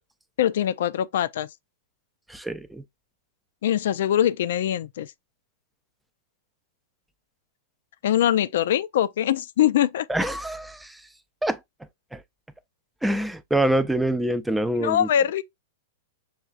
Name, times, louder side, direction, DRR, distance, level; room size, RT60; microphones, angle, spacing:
voice 1, 0.4-1.5 3.6-5.1 8.0-10.1 14.8-15.4, left 11 dB, 65° left, 0.3 m, -22 dB
voice 2, 2.3-2.8 10.1-11.0 11.4-11.6 12.1-12.2 13.0-15.1, right 1 dB, 5° right, 0.5 m, -25 dB
6.3 x 2.4 x 2.3 m
hypercardioid pair, 110°, 0 cm